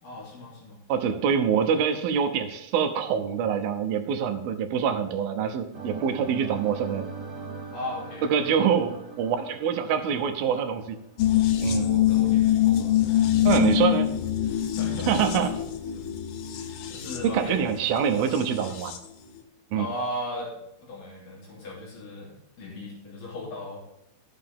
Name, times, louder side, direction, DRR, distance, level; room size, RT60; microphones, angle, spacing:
voice 1, 0.0-0.8 7.7-8.5 11.7-13.8 14.4-15.5 15.9-17.6 19.7-24.0, left 1 dB, 65° left, -4 dB, 4.2 m, -38 dB
voice 2, 0.9-7.1 8.2-11.0 11.6-11.8 13.4-14.1 15.1-15.5 17.2-18.9 19.7-19.9, right 7 dB, 85° right, 7 dB, 2.8 m, -25 dB
sound 1, 5.7-11.7, right 4 dB, 45° right, 1.0 m, -41 dB
sound 2, 11.2-19.1 19.4-19.5, left 12 dB, 90° left, 2.9 m, -25 dB
13.0 x 8.1 x 3.7 m, 0.84 s
omnidirectional pair, 4.2 m